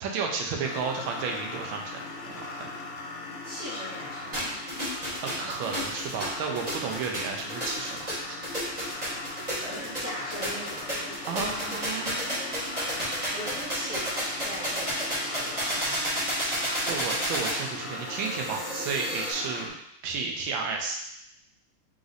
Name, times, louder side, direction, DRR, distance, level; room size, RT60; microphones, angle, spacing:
voice 1, 0.0-2.0 2.6-2.7 5.2-8.5 11.3-13.0 16.8-19.7 20.0-21.0, right 5 dB, 70° right, 1 dB, 1.4 m, -33 dB
sound 1, 0.6-19.7, left 3 dB, 70° left, 1.3 m, -39 dB
voice 2, 3.4-4.6 9.6-11.5 12.2-12.5 12.8-16.3, equal, 50° right, -11 dB, 1.7 m, -41 dB
sound 2, 4.3-19.3, equal, 20° right, 1.3 m, -32 dB
3.9 x 3.2 x 3.9 m, 0.76 s
omnidirectional pair, 2.3 m